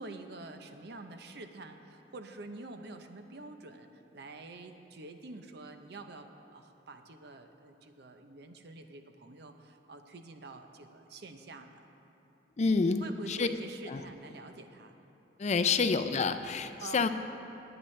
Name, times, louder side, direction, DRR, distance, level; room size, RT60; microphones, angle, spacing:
voice 1, 0.0-11.9 12.6-14.9 15.6-15.8 16.8-17.1, right 2 dB, 60° right, 6 dB, 0.7 m, -47 dB
voice 2, 12.6-13.5 13.9-14.0 15.4-17.1, left 4 dB, 40° left, 10 dB, 0.4 m, -28 dB
20.0 x 8.9 x 3.2 m, 3.0 s
head